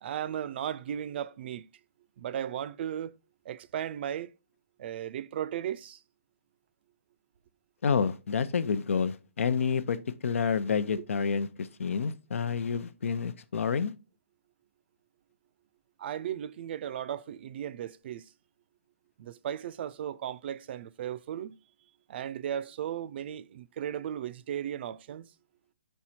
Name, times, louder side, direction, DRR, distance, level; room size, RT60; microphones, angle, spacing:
voice 1, 0.0-1.7 2.2-3.1 3.4-4.3 4.8-6.0 16.0-18.3 19.2-21.6 22.1-25.3, right 10 dB, 55° right, 0.4 m, -36 dB
voice 2, 7.8-10.0 10.2-13.9, left 6 dB, 80° left, 0.6 m, -29 dB
5.2 x 4.5 x 4.2 m
hypercardioid pair, 140°, 7 cm